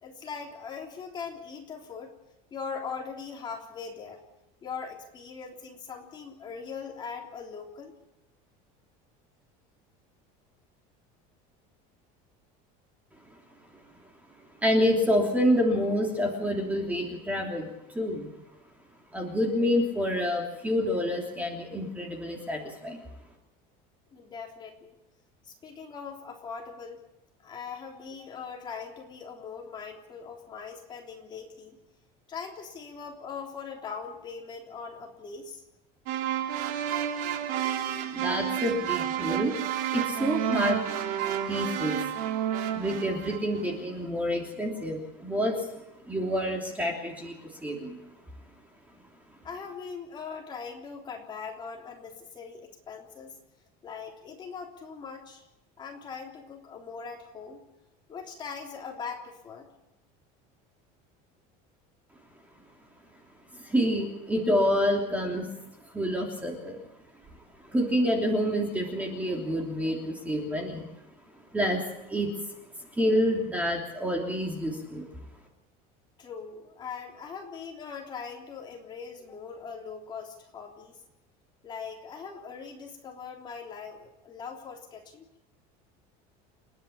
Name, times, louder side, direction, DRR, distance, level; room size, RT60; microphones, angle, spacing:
voice 1, 0.0-2.1 2.5-4.2 4.6-7.9 24.1-25.0 25.4-27.0 27.4-31.8 32.3-35.6 49.4-53.4 53.8-55.4 55.8-57.6 58.1-59.7 76.2-81.0 81.6-85.3, left 5 dB, 25° left, 0 dB, 3.4 m, -41 dB
voice 2, 14.6-18.3 19.1-23.0 38.1-39.6 39.9-40.8 41.5-42.0 42.7-45.7 46.1-48.0 63.5-65.5 65.9-66.8 67.6-70.9 71.5-71.8 72.1-72.3 72.9-75.0, equal, 10° right, 1 dB, 3.1 m, -28 dB
sound 1, 36.1-43.6, right 10 dB, 75° right, 2.5 m, -30 dB
29.5 x 10.5 x 8.7 m, 0.90 s
cardioid pair, 165°, 18 cm